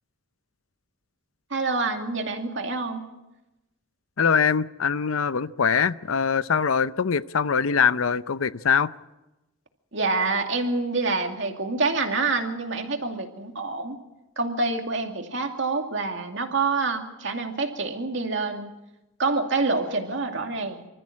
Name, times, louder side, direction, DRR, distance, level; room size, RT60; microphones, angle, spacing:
voice 1, 1.5-3.0 9.9-14.0 14.4-18.7 19.2-20.9, right 3 dB, 60° right, 2.5 m, -27 dB
voice 2, 4.2-8.9, left 6 dB, 85° left, 0.6 m, -23 dB
26.0 x 14.0 x 8.7 m
head